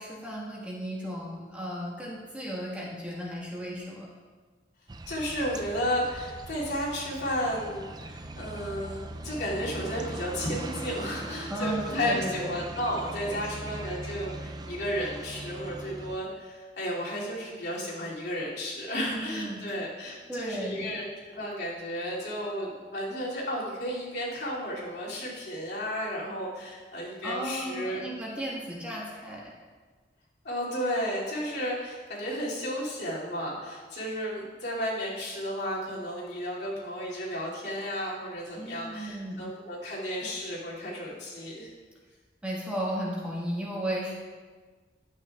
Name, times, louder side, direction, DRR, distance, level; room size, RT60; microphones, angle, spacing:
voice 1, 0.0-4.1 11.5-12.6 13.2-13.7 19.0-19.6 20.3-20.9 27.2-29.5 38.6-39.5 42.4-44.2, equal, 5° right, -5 dB, 1.6 m, -35 dB
sound 1, 4.9-16.2, right 2 dB, 25° right, 0.4 m, -40 dB
voice 2, 5.1-28.1 30.4-41.7, equal, 80° left, -7 dB, 2.7 m, -33 dB
11.5 x 9.0 x 2.4 m, 1.4 s
head